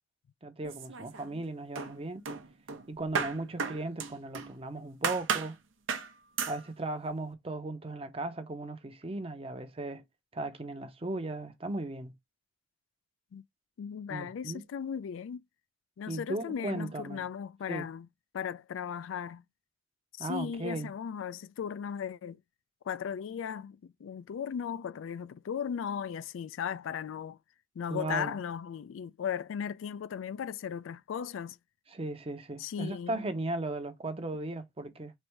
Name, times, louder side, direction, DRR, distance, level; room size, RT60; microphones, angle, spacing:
voice 1, 0.4-2.2 2.9-5.6 6.5-10.0 10.3-12.1 14.1-14.6 16.1-17.2 17.7-17.8 20.2-20.9 27.9-28.4 31.9-35.1, right 2 dB, 30° right, 0.7 m, -37 dB
sound 1, 0.6-1.4 1.8-4.6 5.0-5.5 5.9-6.1 6.4-6.6, right 6 dB, 85° right, 0.8 m, -34 dB
voice 2, 13.8-15.4 16.0-18.1 18.3-19.4 20.2-22.4 22.9-27.4 27.8-31.6 32.6-33.2, left 8 dB, 85° left, 0.3 m, -37 dB
3.3 x 2.6 x 4.4 m
head